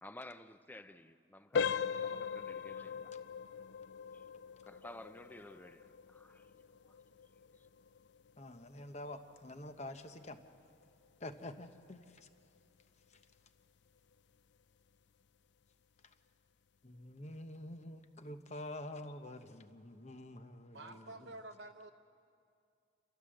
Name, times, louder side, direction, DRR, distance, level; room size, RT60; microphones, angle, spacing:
voice 1, 0.0-3.1 4.1-4.3 4.6-7.0 7.6-7.7, left 1 dB, 10° left, 0.5 m, -53 dB
sound 1, 1.5-12.2 12.6-12.8 13.4-13.5 14.0-14.1, left 6 dB, 65° left, 0.5 m, -41 dB
voice 2, 8.4-10.4 11.2-12.3 16.8-21.3, left 1 dB, 35° left, 0.9 m, -47 dB
voice 3, 20.7-21.9, right 2 dB, 65° right, 0.8 m, -49 dB
28.5 x 13.5 x 7.7 m
head